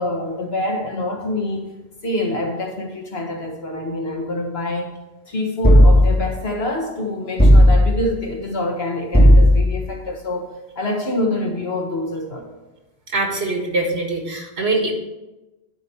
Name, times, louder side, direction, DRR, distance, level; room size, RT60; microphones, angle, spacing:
voice 1, 0.0-1.6 2.0-4.9 5.3-12.5, left 1 dB, 75° left, 1 dB, 1.8 m, -26 dB
sound 1, 5.6-6.4 7.4-8.1 9.1-9.9, equal, 10° left, 0.9 m, -12 dB
voice 2, 13.1-14.9, right 2 dB, 80° right, 2 dB, 2.0 m, -23 dB
11.5 x 4.7 x 5.6 m, 1.0 s
omnidirectional pair, 1.1 m